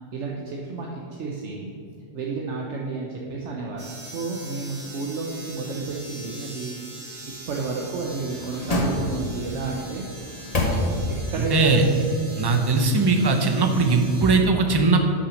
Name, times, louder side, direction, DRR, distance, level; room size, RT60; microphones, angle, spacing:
voice 1, 0.1-1.7 2.1-7.1 7.5-10.0 11.3-11.7, right 3 dB, 75° right, -1 dB, 1.2 m, -31 dB
sound 1, 3.8-14.4, right 2 dB, 45° right, 1.8 m, -42 dB
sound 2, 7.8-9.5 10.1-11.4 11.7-11.8, left 1 dB, 35° left, 1.1 m, -27 dB
voice 2, 11.4-11.8 12.4-15.0, right 3 dB, 25° right, 4 dB, 0.7 m, -19 dB
8.4 x 5.8 x 6.3 m, 2.5 s
omnidirectional pair, 1.2 m